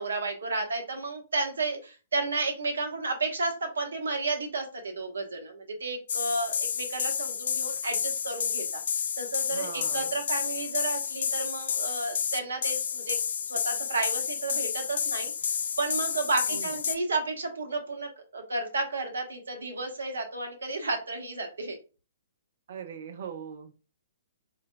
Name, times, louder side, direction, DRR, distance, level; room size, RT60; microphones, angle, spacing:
voice 1, 0.0-8.8 9.2-13.2 13.4-15.3 15.8-21.8, right 3 dB, 65° right, 4 dB, 0.9 m, -32 dB
sound 1, 6.1-17.0, left 7 dB, 55° left, 0.3 m, -30 dB
voice 2, 9.5-10.1 16.5-16.8 22.7-23.8, right 7 dB, 50° right, 8 dB, 0.4 m, -40 dB
4.2 x 2.5 x 2.3 m, 0.34 s
figure-of-eight pair, 115°, 0 cm